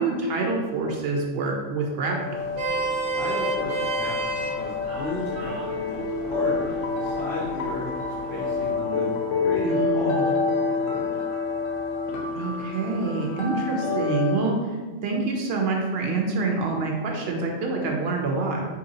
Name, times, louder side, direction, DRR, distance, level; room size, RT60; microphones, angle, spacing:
voice 1, 0.0-2.3 9.6-10.3 12.3-18.7, right 3 dB, 65° right, 1 dB, 0.7 m, -26 dB
sound 1, 2.1-14.4, left 4 dB, 80° left, 1.0 m, -28 dB
Vehicle horn car horn honking, 2.3-8.7, right 3 dB, 80° right, 1.0 m, -32 dB
voice 2, 3.2-7.9 8.3-9.2 9.4-11.2, left 2 dB, 55° left, -7 dB, 0.7 m, -34 dB
2.9 x 2.7 x 3.8 m, 1.4 s
omnidirectional pair, 1.4 m